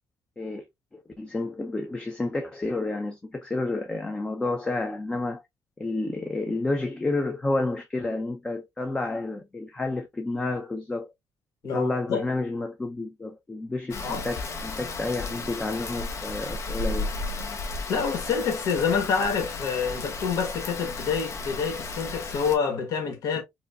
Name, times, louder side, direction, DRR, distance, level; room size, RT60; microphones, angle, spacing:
voice 1, 0.4-0.7 0.9-5.4 5.8-11.1 11.7-17.1, left 2 dB, 15° left, 0.5 m, -30 dB
voice 2, 11.6-12.2 14.0-14.3 17.9-23.4, left 6 dB, 80° left, 1.2 m, -27 dB
Rain, 13.9-22.6, left 3 dB, 60° left, 0.8 m, -34 dB
4.8 x 2.2 x 2.3 m
cardioid pair, 160°, 6 cm